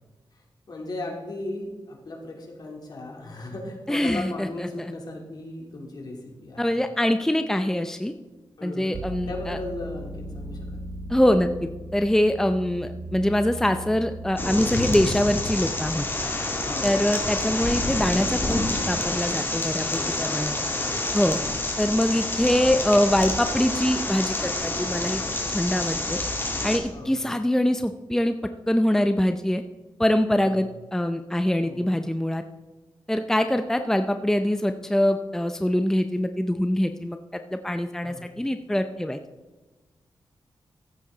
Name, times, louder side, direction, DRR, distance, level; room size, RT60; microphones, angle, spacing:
voice 1, 0.3-6.8 8.6-10.8 16.6-17.0 19.9-21.2 26.9-27.3 30.4-30.7 31.6-31.9 38.0-38.3, left 2 dB, 55° left, 0 dB, 3.2 m, -37 dB
voice 2, 3.9-4.9 6.6-8.1 8.6-9.6 11.1-16.0 16.8-20.5 21.1-21.4 21.8-25.2 25.5-26.2 26.6-28.3 28.7-29.6 30.0-30.7 30.9-32.4 33.1-37.2 37.5-39.2, left 1 dB, 5° left, 8 dB, 0.6 m, -24 dB
sound 1, 8.9-18.5, equal, 65° right, 1.9 m, -39 dB
sound 2, 14.4-26.8, left 2 dB, 25° left, 2.4 m, -28 dB
15.0 x 8.4 x 3.9 m, 1.2 s
cardioid pair, 85°, 8 cm